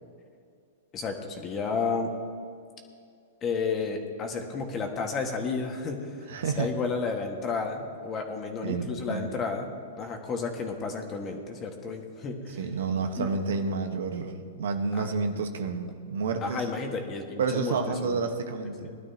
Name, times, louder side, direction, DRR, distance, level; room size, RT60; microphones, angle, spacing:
voice 1, 0.9-2.1 3.4-6.1 6.6-9.7 10.0-12.6 13.2-13.3 14.9-15.1 16.4-18.2 18.8-19.0, left 4 dB, 25° left, 3 dB, 1.7 m, -32 dB
voice 2, 6.3-6.7 8.6-9.3 12.6-16.7 17.4-19.0, right 4 dB, 75° right, 6 dB, 1.3 m, -30 dB
20.0 x 12.0 x 2.9 m, 2.3 s
hypercardioid pair, 135°, 0 cm